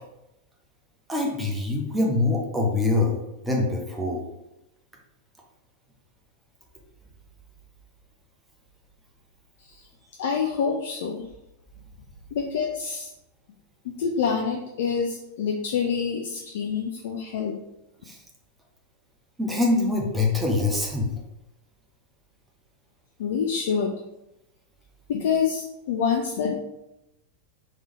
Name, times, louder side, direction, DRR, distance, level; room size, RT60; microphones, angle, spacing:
voice 1, 1.1-3.2 3.4-4.2 18.1-18.2 19.4-21.1, left 2 dB, 10° right, -1 dB, 0.8 m, -24 dB
voice 2, 10.2-11.3 12.3-13.1 14.0-17.6 23.2-23.9 25.1-26.5, left 6 dB, 55° left, 2 dB, 0.4 m, -26 dB
3.5 x 3.1 x 3.1 m, 0.90 s
figure-of-eight pair, 90°, 0 cm